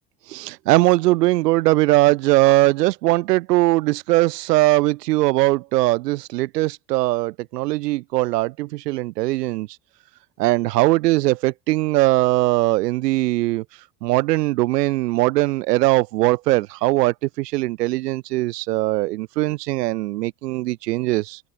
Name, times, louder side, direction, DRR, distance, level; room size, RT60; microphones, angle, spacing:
voice 1, 0.3-9.7 10.4-13.6 14.0-21.4, right 18 dB, 80° right, 3.2 m, -20 dB
hypercardioid pair, 80°, 47 cm